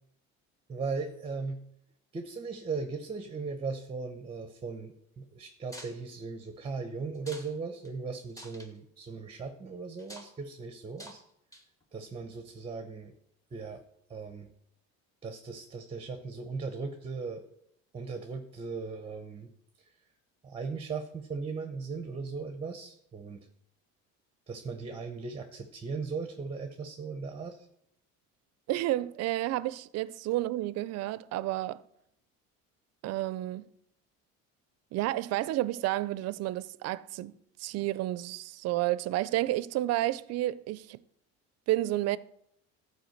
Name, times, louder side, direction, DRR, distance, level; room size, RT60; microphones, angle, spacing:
voice 1, 0.7-1.6 2.1-11.2 11.9-13.1 13.5-13.8 14.1-14.5 15.2-17.4 17.9-19.5 20.4-23.4 24.5-27.7, right 4 dB, 20° right, 0.8 m, -38 dB
sound 1, 5.7-6.0 7.1-7.5 7.8-7.9 8.3-8.7 10.0-10.3 11.0-11.2 11.5-11.8, equal, 10° left, 1.5 m, -47 dB
voice 2, 28.7-31.8 33.0-33.7 34.9-41.0 41.7-42.2, right 15 dB, 55° right, 0.5 m, -31 dB
13.5 x 4.7 x 6.4 m
cardioid pair, 140°, 30 cm